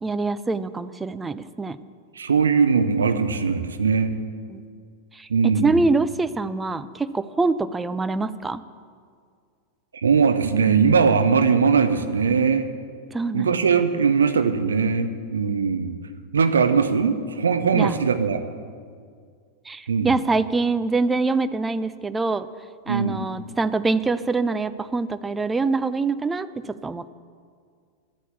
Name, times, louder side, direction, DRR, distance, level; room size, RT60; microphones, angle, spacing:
voice 1, 0.0-1.8 4.5-4.6 5.1-5.3 5.6-8.6 13.1-13.6 17.7-17.9 19.7-22.5 22.9-27.1, right 3 dB, 10° right, 13 dB, 0.4 m, -24 dB
voice 2, 2.2-4.1 5.3-5.8 10.0-12.7 13.3-16.0 16.3-18.4 19.9-20.1 22.9-23.3, right 5 dB, 70° right, 9 dB, 0.8 m, -20 dB
12.0 x 8.3 x 7.1 m, 2.1 s
figure-of-eight pair, 90°, 0 cm